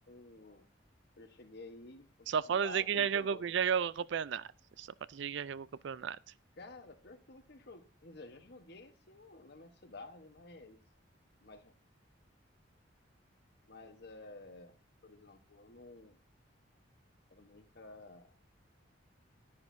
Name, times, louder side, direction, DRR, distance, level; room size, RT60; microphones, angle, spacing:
voice 1, 0.1-0.7 1.2-3.5 6.6-10.8 11.4-11.7 13.7-14.7 15.0-16.2 17.3-18.3, left 3 dB, 55° left, 1.1 m, -52 dB
voice 2, 2.3-4.5 4.8-6.2, right 7 dB, 65° right, 0.4 m, -33 dB
11.0 x 10.5 x 2.7 m
head